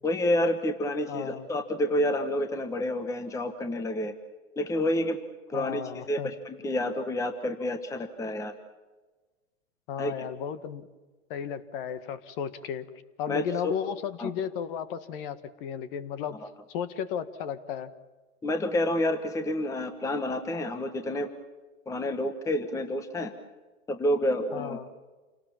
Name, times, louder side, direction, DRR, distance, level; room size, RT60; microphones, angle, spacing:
voice 1, 0.0-4.1 4.6-5.2 5.5-5.8 6.1-8.5 10.0-10.1 13.3-13.7 14.2-14.3 18.4-21.3 21.9-23.3 23.9-24.9, left 1 dB, 10° left, 8 dB, 1.2 m, -29 dB
voice 2, 1.1-1.5 5.5-6.3 9.9-10.9 11.3-12.8 13.2-16.4 16.7-17.9 24.5-24.9, left 8 dB, 40° left, 13 dB, 1.6 m, -34 dB
28.5 x 18.5 x 7.3 m, 1.3 s
hypercardioid pair, 140°, 41 cm